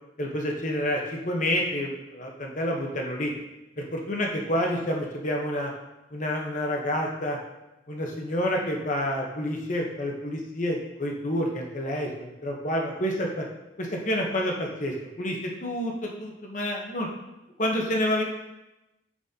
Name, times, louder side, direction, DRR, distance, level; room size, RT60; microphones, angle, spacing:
voice 1, 0.2-3.3 3.8-5.7 6.1-7.4 7.9-13.4 13.8-17.1 17.6-18.2, equal, 40° left, 0 dB, 0.9 m, -28 dB
7.1 x 6.1 x 2.8 m, 0.96 s
head